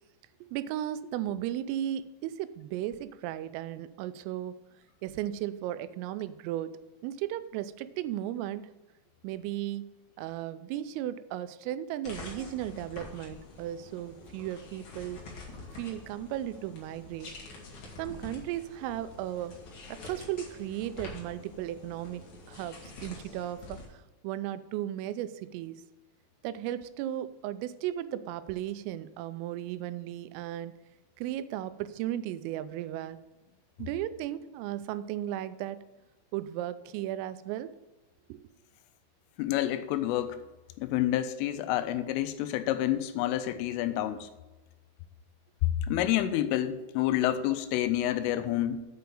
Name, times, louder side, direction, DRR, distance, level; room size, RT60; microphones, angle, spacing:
voice 1, 0.4-4.6 5.0-6.8 7.0-8.7 9.2-9.9 10.2-15.2 15.7-17.3 18.0-19.6 19.9-25.8 26.4-30.7 31.2-33.2 33.8-35.8 36.3-37.7 38.3-38.4, right 12 dB, 90° right, 14 dB, 3.2 m, -35 dB
sound 1, 12.0-23.9, left 3 dB, 55° left, 2.0 m, -47 dB
voice 2, 39.4-40.4 40.8-44.3 45.6-48.8, left 12 dB, 85° left, 10 dB, 3.1 m, -28 dB
7.8 x 5.7 x 6.8 m, 1.1 s
omnidirectional pair, 5.8 m